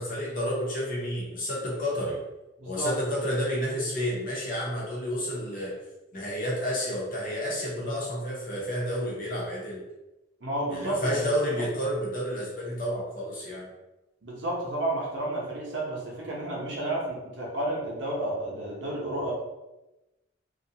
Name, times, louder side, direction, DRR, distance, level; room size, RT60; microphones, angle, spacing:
voice 1, 0.0-2.2 2.7-5.7 6.1-9.8 10.7-13.7, equal, 45° left, -4 dB, 0.8 m, -30 dB
voice 2, 2.6-3.0 10.4-11.2 14.2-19.3, right 1 dB, 70° right, -3 dB, 0.8 m, -31 dB
2.5 x 2.2 x 2.7 m, 1.0 s
head